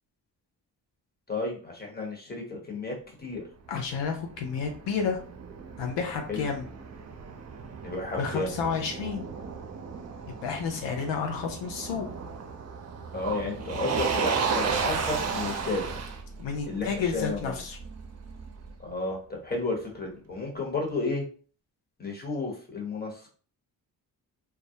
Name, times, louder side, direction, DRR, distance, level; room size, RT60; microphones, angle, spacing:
voice 1, 1.3-3.4 6.3-6.5 7.8-8.5 13.1-16.0 16.7-17.6 18.8-21.3 22.0-23.3, left 3 dB, 20° left, -1 dB, 1.0 m, -32 dB
voice 2, 3.7-5.2 5.8-6.6 8.2-9.3 10.4-12.1 16.4-17.8, left 6 dB, 85° left, 3 dB, 0.5 m, -31 dB
Motor vehicle (road), 3.7-18.7, right 5 dB, 40° right, 0.5 m, -34 dB
2.3 x 2.0 x 2.7 m, 0.42 s
cardioid pair, 55°, 42 cm